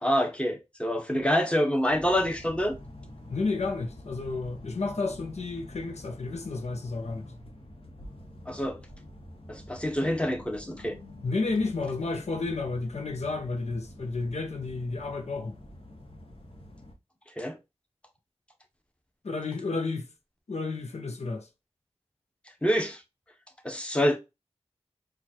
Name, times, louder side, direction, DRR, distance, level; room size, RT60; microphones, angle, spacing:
voice 1, 0.0-2.7 8.5-8.8 9.5-11.0 17.4-17.6 22.6-23.0 23.6-24.2, equal, 10° left, 1.1 m, -26 dB
sound 1, 1.9-16.9, left 1 dB, 55° left, 1.2 m, -47 dB
voice 2, 3.3-7.3 11.2-15.6 19.2-20.1 20.5-21.5, left 3 dB, 85° left, 0.8 m, -31 dB
4.7 x 2.5 x 2.8 m
wide cardioid pair, 55°, 11 cm